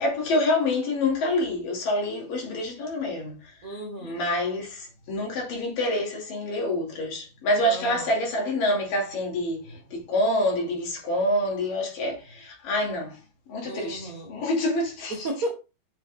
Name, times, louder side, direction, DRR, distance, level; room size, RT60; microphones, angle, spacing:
voice 1, 0.0-3.4 4.0-13.1 13.5-15.1, left 1 dB, 75° left, 4.2 m, -27 dB
voice 2, 3.6-4.3 7.6-8.2 13.6-14.4 15.1-15.5, right 1 dB, 55° right, 0.9 m, -34 dB
8.2 x 6.2 x 2.5 m
omnidirectional pair, 4.0 m